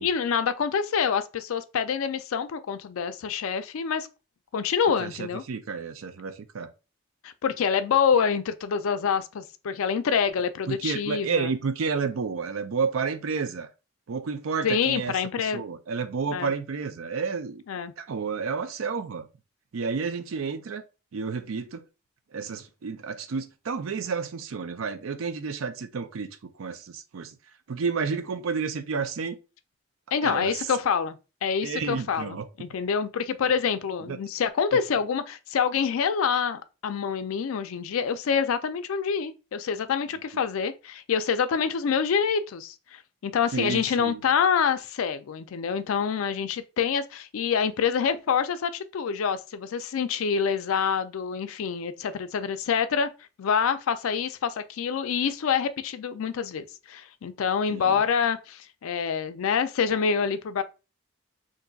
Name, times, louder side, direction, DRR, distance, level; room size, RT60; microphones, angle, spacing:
voice 1, 0.0-4.1 4.5-5.4 7.2-11.5 14.6-15.6 16.3-16.5 17.7-17.9 30.1-53.1 53.4-60.6, left 6 dB, 80° left, 0.4 m, -26 dB
voice 2, 5.0-6.7 10.7-13.7 14.1-17.6 18.0-19.3 19.7-20.8 21.1-21.8 22.3-26.3 26.6-27.4 27.7-29.4 30.2-30.7 31.6-32.5 34.1-34.2 43.5-44.2 57.7-58.0, right 5 dB, 75° right, 0.4 m, -31 dB
3.9 x 2.6 x 2.3 m
head